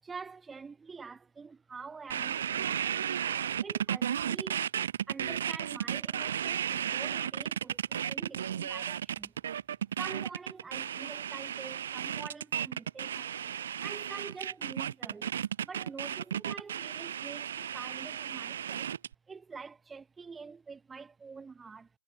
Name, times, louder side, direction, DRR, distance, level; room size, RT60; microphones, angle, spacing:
voice 1, 0.0-3.1 3.6-4.7 5.1-9.3 10.0-13.6 13.8-15.3 15.6-18.9 19.3-21.9, right 5 dB, 10° right, 6.1 m, -46 dB
sound 1, 2.1-19.1, right 9 dB, 55° right, 2.1 m, -34 dB
hypercardioid pair, 150°, 0 cm